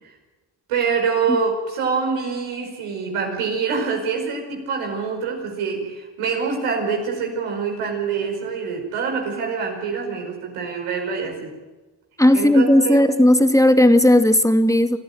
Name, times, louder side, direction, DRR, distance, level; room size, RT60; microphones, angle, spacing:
voice 1, 0.7-11.5 12.3-13.1, right 5 dB, 90° right, 1 dB, 5.4 m, -25 dB
voice 2, 12.2-15.0, left 1 dB, 5° left, 6 dB, 2.6 m, -15 dB
25.5 x 14.0 x 9.3 m, 1.2 s
supercardioid pair, 55°, 50 cm